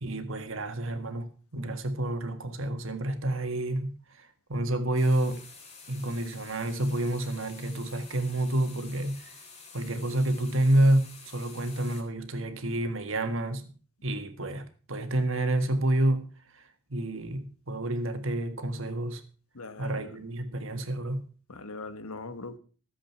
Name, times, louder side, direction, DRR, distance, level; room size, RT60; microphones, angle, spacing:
voice 1, 0.0-5.4 5.9-9.3 9.7-13.7 14.0-16.3 16.5-16.6 16.9-19.2 19.8-21.3, right 1 dB, 60° right, 1.7 m, -29 dB
sound 1, 4.9-12.0, left 4 dB, 30° left, 2.4 m, -49 dB
voice 2, 19.5-20.2 21.5-22.6, left 3 dB, 80° left, 1.3 m, -41 dB
14.0 x 7.7 x 5.9 m
head